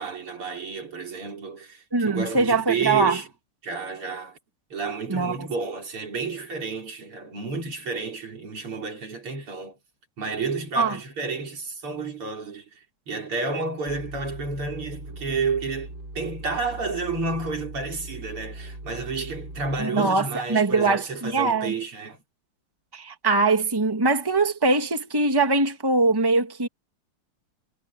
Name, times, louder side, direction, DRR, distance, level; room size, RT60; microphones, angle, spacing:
voice 1, 0.0-3.3 3.6-4.4 4.7-9.8 10.2-22.2, right 4 dB, 80° right, 5.2 m, -31 dB
voice 2, 1.9-3.2 5.1-5.5 10.8-11.0 19.8-21.7 22.9-26.7, right 3 dB, 10° right, 2.0 m, -22 dB
sound 1, 13.9-19.8, right 2 dB, 45° right, 7.0 m, -40 dB
omnidirectional pair, 2.4 m